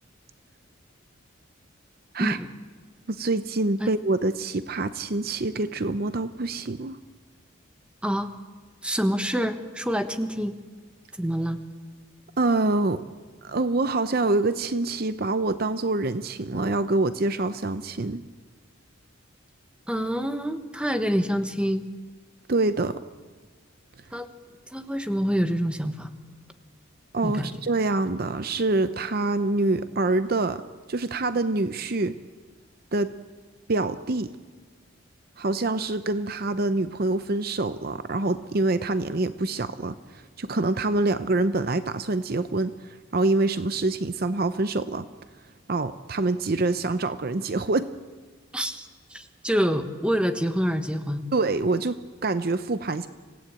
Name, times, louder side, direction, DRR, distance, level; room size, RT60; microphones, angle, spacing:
voice 1, 3.1-7.0 12.4-13.0 13.4-18.2 22.5-23.0 27.1-30.6 30.9-32.2 32.9-33.1 33.7-34.3 35.4-42.7 43.1-45.1 45.7-47.9 51.3-53.1, right 2 dB, 45° right, 12 dB, 0.7 m, -25 dB
voice 2, 8.8-10.5 11.2-11.6 19.9-21.8 24.1-24.3 24.7-26.1 27.2-27.5 48.5-51.3, equal, 5° right, 8 dB, 1.2 m, -26 dB
26.0 x 17.5 x 8.8 m, 1.4 s
head